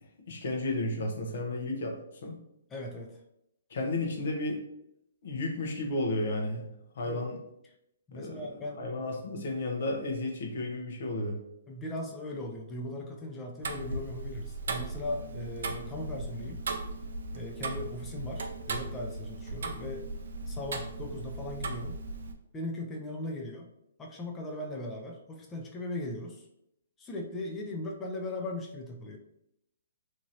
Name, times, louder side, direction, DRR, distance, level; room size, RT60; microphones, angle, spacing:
voice 1, 0.3-2.4 3.7-4.6 5.2-6.7 6.9-7.4 8.1-8.5 8.8-11.4, left 2 dB, 60° left, 1 dB, 0.8 m, -33 dB
voice 2, 2.7-3.2 7.0-7.2 8.1-8.8 11.7-16.6 17.3-20.1 20.5-22.0 22.5-23.7 24.0-26.4 27.0-29.2, left 1 dB, 15° left, 1 dB, 0.4 m, -38 dB
Tick-tock, 13.6-22.3, right 2 dB, 70° right, 0.4 m, -37 dB
2.9 x 2.7 x 2.7 m, 0.80 s
hypercardioid pair, 140°, 0 cm